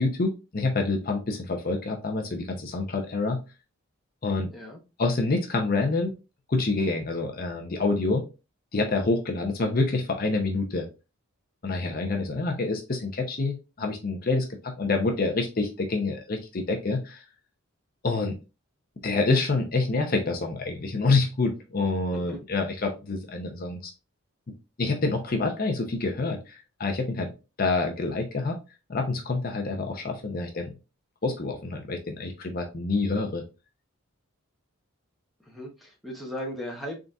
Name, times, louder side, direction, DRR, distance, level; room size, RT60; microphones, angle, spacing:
voice 1, 0.0-3.4 4.2-4.5 5.0-6.1 6.5-8.2 8.7-10.9 11.6-17.2 18.0-18.3 19.0-23.9 24.8-27.3 27.6-28.6 28.9-30.7 31.2-33.4, left 3 dB, 40° left, 3 dB, 0.6 m, -27 dB
voice 2, 4.5-4.8 22.1-22.5 35.4-37.0, equal, ahead, 0 dB, 0.8 m, -37 dB
3.9 x 3.7 x 2.3 m, 0.29 s
head